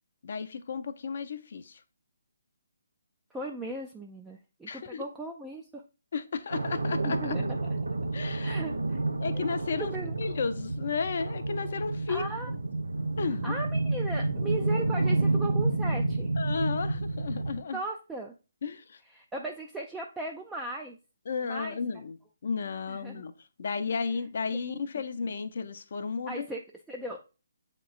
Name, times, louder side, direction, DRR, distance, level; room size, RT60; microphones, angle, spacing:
voice 1, 0.2-1.8 4.7-5.0 6.1-7.3 8.1-8.6 9.2-9.9 10.2-12.2 13.2-13.5 16.4-17.8 18.6-19.0 21.3-22.2 22.4-23.3 23.6-26.5, left 5 dB, 55° left, 0.5 m, -33 dB
voice 2, 3.3-5.8 7.0-7.6 8.4-9.0 9.3-9.4 9.8-10.2 12.1-12.5 13.4-16.3 17.7-18.3 19.1-21.0 21.4-21.8 22.9-23.2 24.5-24.7 26.3-26.6 26.9-27.2, right 2 dB, 5° right, 0.4 m, -37 dB
sound 1, 6.5-17.6, right 2 dB, 80° right, 0.5 m, -30 dB
7.6 x 2.9 x 2.3 m
figure-of-eight pair, 145°, 0 cm